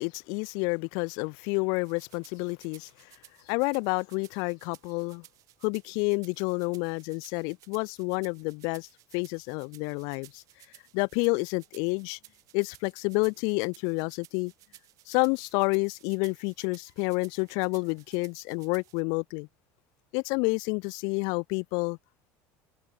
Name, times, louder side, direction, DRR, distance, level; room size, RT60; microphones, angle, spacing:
voice 1, 0.0-2.9 3.5-5.2 5.6-8.9 9.1-10.4 10.9-12.2 12.5-14.5 15.1-19.5 20.1-22.0, left 34 dB, 75° left, 0.4 m, -29 dB
sound 1, 1.8-19.0, right 16 dB, 55° right, 1.8 m, -57 dB
cardioid pair, 140°, 7 cm